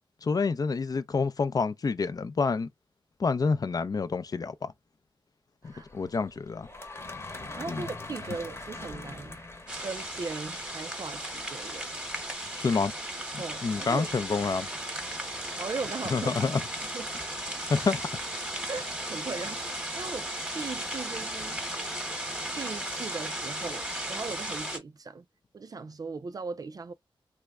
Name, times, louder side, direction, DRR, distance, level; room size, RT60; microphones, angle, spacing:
voice 1, 0.2-2.7 3.2-4.7 5.6-6.7 7.7-7.8 12.6-12.9 13.3-14.7 16.1-16.6 17.7-18.0, left 4 dB, 45° left, 0.5 m, -28 dB
sound 1, 5.6-12.3, left 2 dB, 30° left, 0.9 m, -44 dB
voice 2, 7.5-9.4 9.8-11.9 13.4-14.1 15.6-16.5 16.9-17.1 18.7-20.3 20.5-21.6 22.5-25.2 25.5-26.9, right 4 dB, 45° right, 0.3 m, -38 dB
sound 2, 9.7-24.8, right 1 dB, 10° right, 1.0 m, -36 dB
3.4 x 2.1 x 3.4 m
wide cardioid pair, 105°, 9 cm